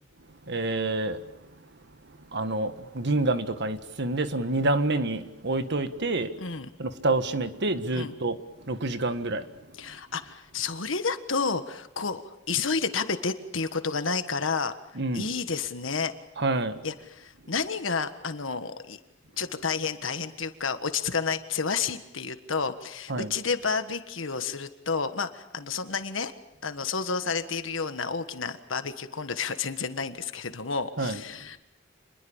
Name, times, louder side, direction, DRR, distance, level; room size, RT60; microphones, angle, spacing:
voice 1, 0.5-1.2 2.3-6.3 6.8-8.4 8.6-9.5 14.9-15.3 16.4-16.8 23.1-23.3 31.0-31.2, right 2 dB, 60° right, 1.7 m, -27 dB
voice 2, 6.4-6.7 7.9-8.1 9.8-14.7 15.1-16.1 16.8-19.0 19.4-26.3 26.6-31.6, left 5 dB, 80° left, 1.6 m, -30 dB
28.0 x 21.5 x 7.2 m
head